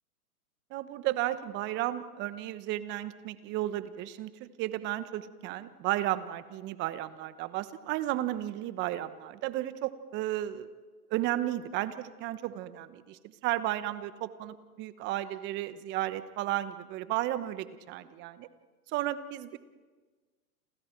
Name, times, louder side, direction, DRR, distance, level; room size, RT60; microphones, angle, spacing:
voice 1, 0.7-10.7 11.1-18.5 18.9-19.6, right 14 dB, 25° right, 14 dB, 1.0 m, -33 dB
30.0 x 27.5 x 4.5 m, 1.4 s
hypercardioid pair, 135°, 45 cm